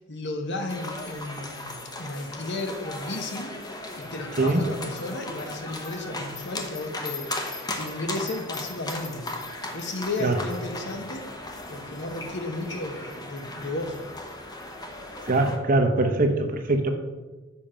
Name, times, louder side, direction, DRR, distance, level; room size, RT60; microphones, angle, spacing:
voice 1, 0.0-7.4 7.8-9.3 9.7-11.3 11.7-14.0, left 2 dB, 60° left, 5 dB, 1.1 m, -34 dB
sound 1, 0.7-15.6, left 2 dB, 20° left, 0.9 m, -37 dB
voice 2, 15.3-16.9, right 2 dB, 40° right, 5 dB, 0.9 m, -22 dB
7.3 x 5.9 x 5.1 m, 1.2 s
head